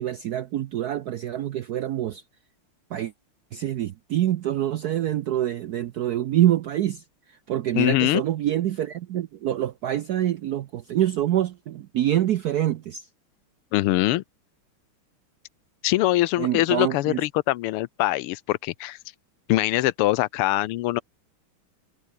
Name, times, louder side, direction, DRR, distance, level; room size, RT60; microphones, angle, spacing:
voice 1, 0.0-2.2 2.9-3.1 3.5-7.0 7.3-13.1 16.4-17.2, right 12 dB, 75° right, 0.9 m, -26 dB
voice 2, 7.7-8.2 13.7-14.2 15.8-19.0 19.5-21.0, left 16 dB, 85° left, 1.6 m, -23 dB
omnidirectional pair, 2.4 m